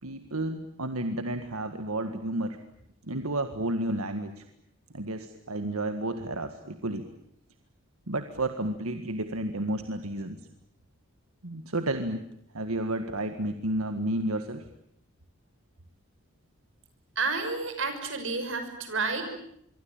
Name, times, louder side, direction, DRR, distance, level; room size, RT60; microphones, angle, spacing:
voice 1, 0.0-2.6 3.0-4.4 4.9-7.1 8.1-10.5 11.4-12.2 12.5-14.7, right 1 dB, 90° right, 8 dB, 1.8 m, -31 dB
voice 2, 17.2-19.2, right 4 dB, 65° right, 7 dB, 6.0 m, -30 dB
26.0 x 23.5 x 8.9 m, 0.75 s
head